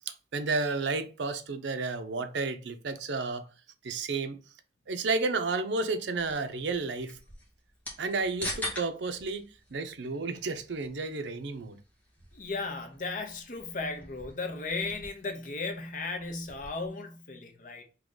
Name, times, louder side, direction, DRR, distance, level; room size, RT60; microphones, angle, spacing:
voice 1, 0.1-3.4 3.8-4.4 4.9-7.2 8.0-11.8, right 3 dB, 75° right, 0.6 m, -32 dB
sound 1, 6.2-16.9, left 1 dB, 10° left, 1.3 m, -45 dB
voice 2, 12.3-17.8, left 3 dB, 45° left, 0.8 m, -36 dB
3.7 x 2.9 x 3.7 m
head